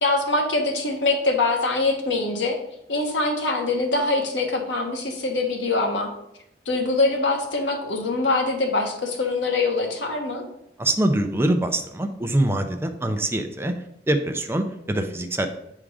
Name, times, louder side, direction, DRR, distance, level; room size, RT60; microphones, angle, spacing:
voice 1, 0.0-2.6 2.9-6.1 6.7-10.4, left 3 dB, 90° left, 2 dB, 1.3 m, -23 dB
voice 2, 10.8-13.7 14.1-15.5, right 1 dB, 15° right, 6 dB, 0.5 m, -24 dB
8.2 x 3.7 x 4.8 m, 0.81 s
head